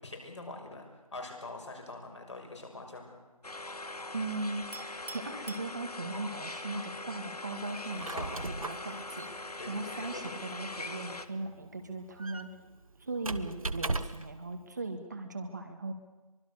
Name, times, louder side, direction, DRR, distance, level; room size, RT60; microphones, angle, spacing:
voice 1, 0.0-3.2 8.1-8.6 9.6-10.3, left 2 dB, 50° left, 2 dB, 6.0 m, -44 dB
sound 1, 3.4-11.3, left 2 dB, 90° left, 1.6 m, -42 dB
voice 2, 4.1-8.3 8.6-9.3 9.7-12.5 13.0-15.9, right 2 dB, 30° right, 5 dB, 1.7 m, -38 dB
Chink clink, 4.7-6.4, right 2 dB, 80° right, 2.3 m, -48 dB
Squeak, 7.8-14.4, right 3 dB, 65° right, 1.4 m, -39 dB
24.0 x 24.0 x 6.7 m, 1.1 s
figure-of-eight pair, 170°, 19 cm